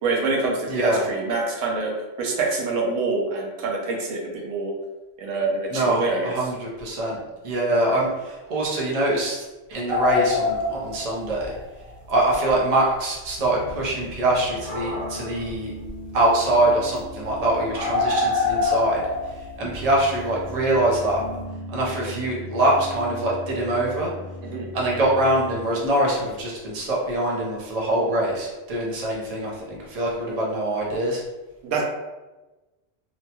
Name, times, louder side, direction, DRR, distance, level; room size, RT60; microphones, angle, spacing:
voice 1, 0.0-1.9 2.2-4.7 5.2-6.3 24.4-24.7 31.6-31.8, right 3 dB, 85° right, 0 dB, 1.0 m, -25 dB
voice 2, 0.7-1.0 5.7-7.2 7.4-11.5 12.1-15.7 16.1-19.0 19.6-21.2 21.7-24.1 24.7-31.2, right 1 dB, 40° right, -4 dB, 0.6 m, -24 dB
sound 1, 9.9-11.6 11.9-12.0 12.5-12.6 13.3-13.4 14.5-15.5 15.8-16.1 16.5-16.6 17.0-17.1 17.2-17.3 17.7-20.8 21.1-21.4, left 3 dB, 25° right, 1.0 m, -25 dB
Piano, 13.4-25.9, left 1 dB, 65° left, 0.7 m, -39 dB
2.9 x 2.2 x 2.8 m, 1.1 s
omnidirectional pair, 1.2 m